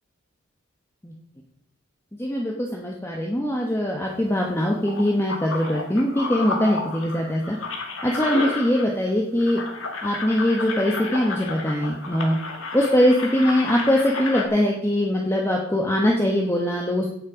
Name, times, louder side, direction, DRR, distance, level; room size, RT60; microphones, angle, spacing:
voice 1, 2.2-7.6 8.0-9.6 10.0-12.4 12.7-17.1, left 1 dB, 10° left, -1 dB, 1.1 m, -22 dB
sound 1, 4.0-9.1 9.4-14.5, left 3 dB, 70° left, 2.2 m, -32 dB
17.0 x 6.5 x 5.1 m, 0.73 s
head